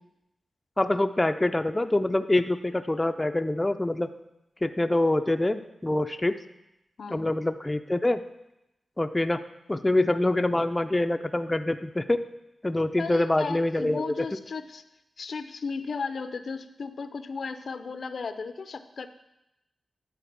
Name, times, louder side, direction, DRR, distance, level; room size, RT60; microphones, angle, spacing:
voice 1, 0.8-4.1 4.6-6.4 7.1-8.2 9.0-9.4 9.7-12.2 12.6-14.0, left 1 dB, 20° left, 8 dB, 0.4 m, -25 dB
voice 2, 13.0-14.8 15.2-19.1, left 4 dB, 70° left, 10 dB, 0.5 m, -35 dB
11.0 x 4.0 x 6.7 m, 0.89 s
wide cardioid pair, 80°, 0 cm